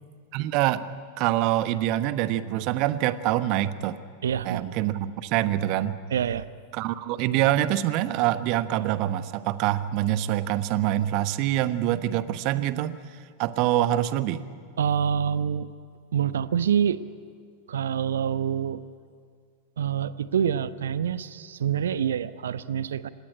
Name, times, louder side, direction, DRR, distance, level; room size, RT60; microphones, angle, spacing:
voice 1, 0.3-0.8 1.2-4.0 4.4-6.0 6.7-13.0 13.4-14.4, right 13 dB, 45° right, 13 dB, 1.2 m, -25 dB
voice 2, 4.2-4.6 6.1-6.5 14.8-15.7 16.1-17.0 17.7-18.8 19.8-23.1, right 8 dB, 65° right, 15 dB, 0.9 m, -26 dB
26.0 x 18.5 x 10.0 m, 2.1 s
figure-of-eight pair, 90°, 0 cm